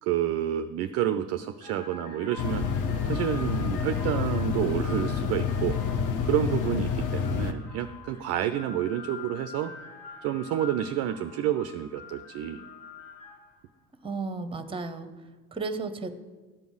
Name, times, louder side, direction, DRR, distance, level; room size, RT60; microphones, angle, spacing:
voice 1, 0.0-9.7 10.2-12.6, right 11 dB, 35° right, 10 dB, 0.4 m, -29 dB
sound 1, 0.9-1.1 1.5-13.6, left 5 dB, 60° left, 1.8 m, -46 dB
sound 2, 2.4-7.5, left 6 dB, 40° left, 0.8 m, -28 dB
voice 2, 14.0-15.1 15.5-16.2, right 3 dB, 10° right, 10 dB, 0.8 m, -33 dB
12.0 x 5.3 x 6.1 m, 1.3 s
figure-of-eight pair, 65°, 49 cm